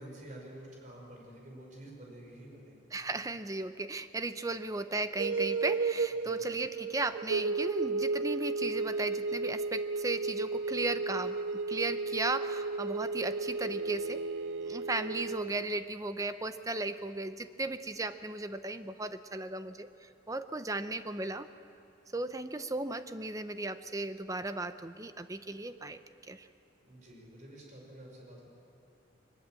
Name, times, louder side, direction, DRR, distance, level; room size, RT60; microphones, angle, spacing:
voice 1, 0.0-2.8 6.2-6.4 26.8-28.5, right 1 dB, 40° right, -1 dB, 5.1 m, -49 dB
voice 2, 2.9-11.4 11.7-14.2 14.6-19.9 20.3-21.5 22.1-26.0 26.3-26.5, right 2 dB, 15° right, 10 dB, 0.7 m, -36 dB
sound 1, 5.2-15.8, right 4 dB, 70° right, 0.5 m, -33 dB
22.5 x 20.5 x 7.6 m, 2.7 s
head